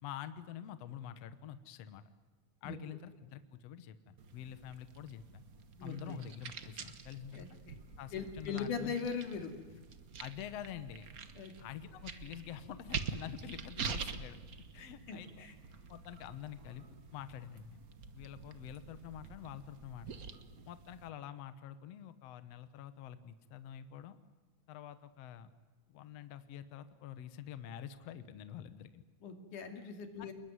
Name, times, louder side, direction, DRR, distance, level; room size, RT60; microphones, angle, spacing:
voice 1, 0.0-2.0 2.6-5.4 5.8-7.5 8.0-8.9 10.2-11.1 11.6-14.4 14.7-15.5 15.9-16.9 17.1-17.8 18.1-20.2 20.7-24.2 24.7-25.5 25.9-29.0 30.2-30.3, left 10 dB, 65° left, 11 dB, 2.0 m, -47 dB
sound 1, 4.2-21.1, right 5 dB, 60° right, 0.9 m, -46 dB
voice 2, 5.8-6.2 7.3-7.5 8.1-9.5 11.4-11.5 14.8-15.5 29.2-30.3, left 5 dB, 90° left, 5 dB, 4.1 m, -40 dB
28.5 x 20.5 x 9.6 m, 1.3 s
omnidirectional pair, 3.5 m